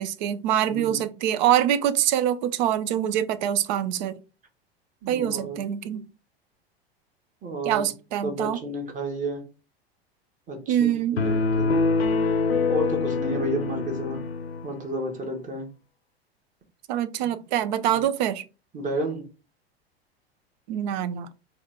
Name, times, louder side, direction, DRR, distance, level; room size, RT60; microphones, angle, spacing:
voice 1, 0.0-4.2 5.1-6.1 7.6-8.6 10.7-11.2 16.9-18.4 20.7-21.3, right 11 dB, 45° right, 0.5 m, -25 dB
voice 2, 5.0-5.6 7.4-7.8 8.2-9.4 10.5-11.8 12.7-14.2 14.6-15.7 18.7-19.2, right 1 dB, 25° right, 1.3 m, -31 dB
sound 1, 11.2-14.7, left 4 dB, 75° left, 0.7 m, -24 dB
4.3 x 2.4 x 4.3 m
figure-of-eight pair, 85°, 31 cm